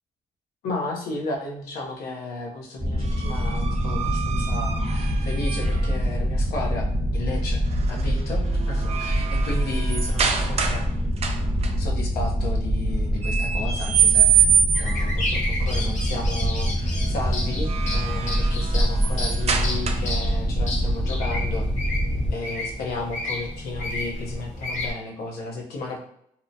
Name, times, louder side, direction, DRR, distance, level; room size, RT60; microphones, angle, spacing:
voice 1, 0.6-7.6 7.9-10.8 11.8-14.5 14.8-21.7 22.3-26.0, left 2 dB, 85° left, 0 dB, 0.6 m, -33 dB
sound 1, 2.8-22.3, equal, 10° right, 0.7 m, -25 dB
sound 2, 3.0-5.9 7.7-8.0 8.4-10.9 11.2-11.7 13.2-15.1 17.4-20.3, right 8 dB, 45° right, 0.4 m, -25 dB
sound 3, 14.7-24.9, left 1 dB, 50° left, 0.8 m, -31 dB
2.7 x 2.1 x 2.6 m, 0.72 s
cardioid pair, 85°, 16 cm